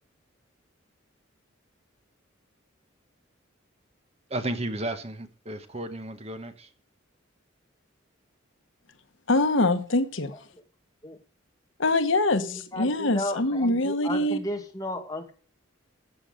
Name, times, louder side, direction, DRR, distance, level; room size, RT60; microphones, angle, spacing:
voice 1, 4.3-6.7, right 1 dB, 30° right, 9 dB, 1.2 m, -33 dB
voice 2, 9.3-10.3 11.8-14.4, left 2 dB, 75° left, 10 dB, 1.2 m, -24 dB
voice 3, 10.3-10.6 11.0-11.2 12.3-15.3, left 1 dB, 20° left, 3 dB, 2.0 m, -34 dB
13.5 x 7.7 x 5.1 m, 0.39 s
head